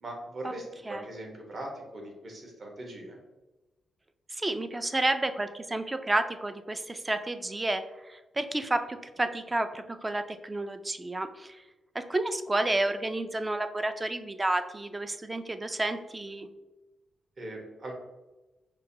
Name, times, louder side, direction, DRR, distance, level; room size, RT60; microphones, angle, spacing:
voice 1, 0.0-3.2 17.4-17.9, right 1 dB, 45° right, 1 dB, 1.0 m, -40 dB
voice 2, 4.3-11.6 11.9-16.5, right 2 dB, 20° right, 9 dB, 0.3 m, -31 dB
5.2 x 2.2 x 2.7 m, 1.1 s
cardioid pair, 95°, 0 cm